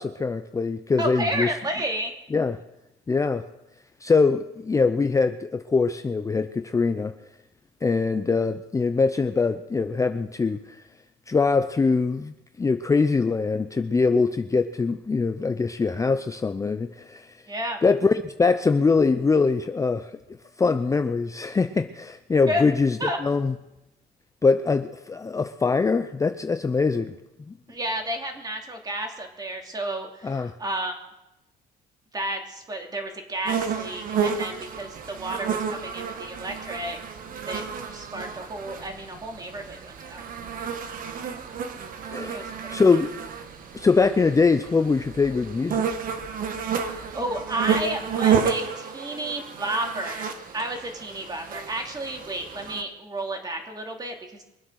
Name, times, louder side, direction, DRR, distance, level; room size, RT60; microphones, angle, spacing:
voice 1, 0.0-1.5 2.3-2.6 3.1-3.4 4.0-7.1 7.8-10.8 11.3-17.4 17.8-20.1 20.6-23.5 24.4-27.1 27.5-27.6 30.2-30.5 42.1-43.1 43.7-45.9, left 4 dB, 20° left, 9 dB, 0.6 m, -23 dB
voice 2, 1.0-2.1 17.5-17.8 22.4-22.6 23.0-23.2 27.7-31.0 32.1-37.0 37.5-37.6 37.9-40.3 42.3-42.8 46.8-50.3 50.5-54.4, right 1 dB, 25° right, 3 dB, 2.9 m, -31 dB
sound 1, 33.5-52.8, right 7 dB, 55° right, 1.6 m, -31 dB
23.5 x 8.0 x 6.4 m, 0.93 s
cardioid pair, 110°, 17 cm